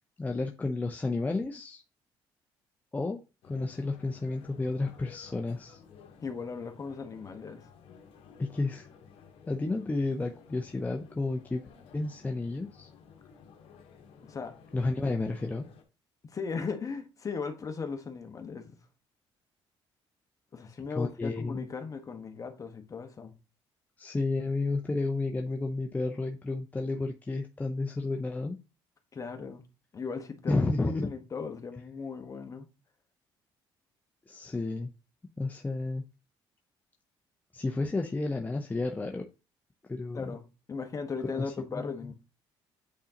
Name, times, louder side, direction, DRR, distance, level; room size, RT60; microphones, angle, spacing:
voice 1, 0.2-1.8 2.9-5.8 8.4-8.9 9.5-11.6 11.9-12.9 14.7-15.7 20.9-21.7 24.0-28.6 30.5-31.1 34.3-34.9 35.4-36.0 37.5-39.2 39.9-40.3 41.3-41.8, left 3 dB, 15° left, 0.7 m, -31 dB
sound 1, 3.4-15.8, left 6 dB, 75° left, 1.2 m, -55 dB
voice 2, 6.2-7.6 14.2-14.5 16.2-18.8 20.5-23.3 29.1-29.7 29.9-30.5 31.0-32.7 40.1-40.4 40.7-42.1, left 5 dB, 35° left, 1.3 m, -37 dB
8.5 x 3.8 x 2.9 m
cardioid pair, 85°, 10 cm